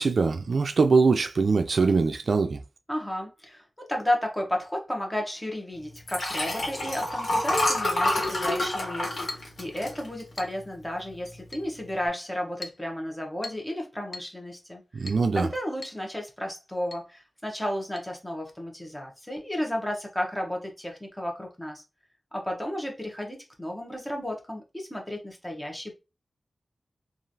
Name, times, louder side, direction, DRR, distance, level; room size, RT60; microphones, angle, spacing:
voice 1, 0.0-2.6 14.9-15.5, right 4 dB, 75° right, 0.3 m, -22 dB
voice 2, 2.9-21.8 22.3-25.9, left 1 dB, 10° left, 0.9 m, -33 dB
Liquid, 6.0-10.6 11.1-11.4 11.6-11.7, left 1 dB, 75° left, 1.3 m, -27 dB
Chink clink, 8.2-8.4 9.3-9.6 10.4-10.6 11.5-11.7 12.6-12.8 13.4-13.7 14.1-14.3 15.1-15.3 15.8-16.0 16.3-16.4 16.9-17.1 18.0-18.1, left 2 dB, 55° left, 0.4 m, -41 dB
3.0 x 2.5 x 2.6 m
wide cardioid pair, 75°, 0 cm